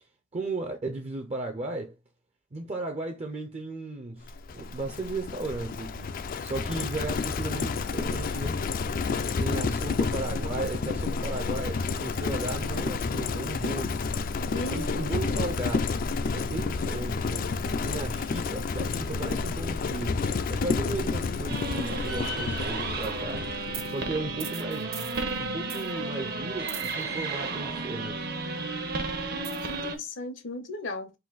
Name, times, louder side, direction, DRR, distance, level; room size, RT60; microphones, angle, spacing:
voice 1, 0.3-2.0 2.5-6.1 6.4-8.6 9.4-14.0 14.7-15.9 16.3-17.6 17.8-23.5 23.8-28.3, right 2 dB, 35° right, 0.5 m, -35 dB
Livestock farm animals working animals, 4.3-23.9, left 4 dB, 45° left, 0.4 m, -30 dB
voice 2, 14.5-15.5 29.3-31.1, left 2 dB, 70° left, 0.8 m, -37 dB
sound 1, 21.5-30.0, right 3 dB, 55° right, 0.9 m, -33 dB
3.9 x 2.6 x 4.0 m
head